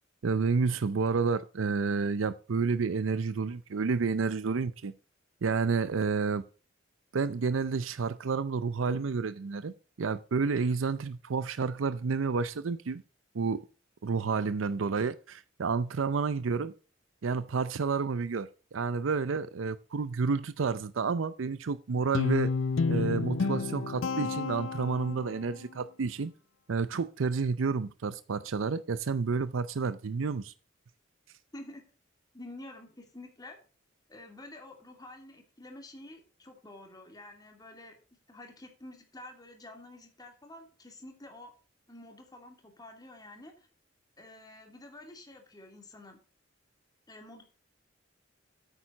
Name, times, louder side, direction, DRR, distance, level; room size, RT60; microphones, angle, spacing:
voice 1, 0.2-4.9 5.4-6.4 7.1-13.0 13.3-13.6 14.0-16.7 17.2-22.5 22.9-26.3 26.7-30.5, right 4 dB, 85° right, 0.5 m, -30 dB
Guitar, 22.1-25.4, left 4 dB, 80° left, 0.5 m, -30 dB
voice 2, 31.5-31.8 32.3-33.6 34.1-38.0 38.3-41.5 41.9-43.7 44.2-46.2 47.1-47.4, left 1 dB, 20° left, 2.7 m, -49 dB
9.1 x 8.7 x 3.9 m
head